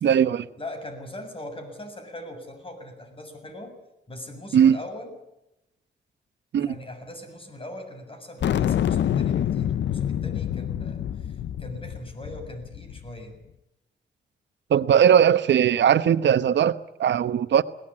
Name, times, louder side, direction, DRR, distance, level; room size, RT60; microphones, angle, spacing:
voice 1, 0.0-0.5 4.5-4.8 6.5-6.8 14.7-17.6, right 9 dB, 85° right, 1.0 m, -19 dB
voice 2, 0.6-3.8 4.1-5.1 6.6-13.4, left 1 dB, 30° left, 7.2 m, -40 dB
sound 1, 8.4-13.1, left 10 dB, 90° left, 0.7 m, -26 dB
22.0 x 18.0 x 8.8 m
cardioid pair, 95°, 18 cm